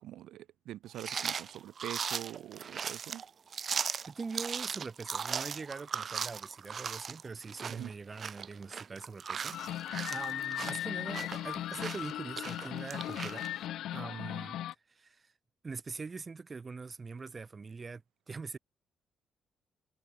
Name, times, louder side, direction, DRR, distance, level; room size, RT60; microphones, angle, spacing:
voice 1, 0.0-3.2 7.7-7.9, right 13 dB, 80° right, 0.8 m, -44 dB
sound 1, 0.9-13.5, right 6 dB, 50° right, 0.4 m, -38 dB
voice 2, 3.8-13.6 13.9-14.6 14.9-15.3 15.6-18.0 18.3-18.6, right 4 dB, 30° right, 2.6 m, -43 dB
sound 2, 9.5-14.7, left 12 dB, 80° left, 1.3 m, -38 dB
cardioid pair, 90°, 0 cm